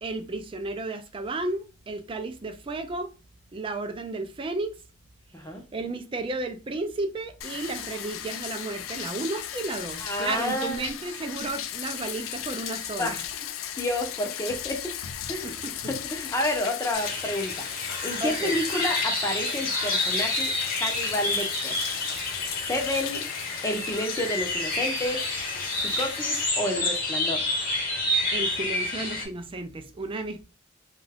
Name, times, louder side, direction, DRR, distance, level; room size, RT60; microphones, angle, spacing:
voice 1, 0.0-3.1 3.5-4.8 5.7-13.2 15.4-15.8 18.2-18.6 22.6-22.7 28.3-30.4, right 2 dB, 25° right, 0.4 m, -33 dB
Bathtub (filling or washing), 7.4-26.5, left 10 dB, 85° left, 0.3 m, -36 dB
voice 2, 10.0-10.9 13.0-13.3 13.8-14.9 15.3-15.5 15.9-17.6 18.0-20.5 20.8-21.7 22.7-23.3 23.6-25.2 25.8-27.4, left 1 dB, 15° left, 0.6 m, -30 dB
sound 1, 16.9-29.2, left 2 dB, 45° left, 1.0 m, -29 dB
2.5 x 2.3 x 3.4 m
head